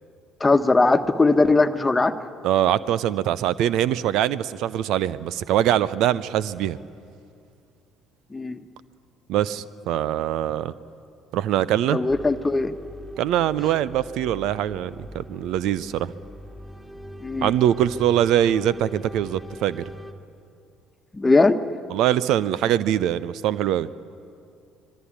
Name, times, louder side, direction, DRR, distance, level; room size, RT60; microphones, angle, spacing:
voice 1, 0.4-2.1 8.3-8.6 11.9-12.7 17.2-17.5 21.1-21.6, left 3 dB, 20° left, 10 dB, 1.4 m, -19 dB
voice 2, 2.4-6.8 9.3-10.7 11.3-12.0 13.2-16.1 17.4-19.8 21.9-23.9, right 11 dB, 60° right, 18 dB, 0.6 m, -23 dB
sound 1, 12.1-20.1, equal, 10° right, 2.9 m, -42 dB
26.0 x 22.5 x 8.6 m, 2.4 s
figure-of-eight pair, 50°, 0 cm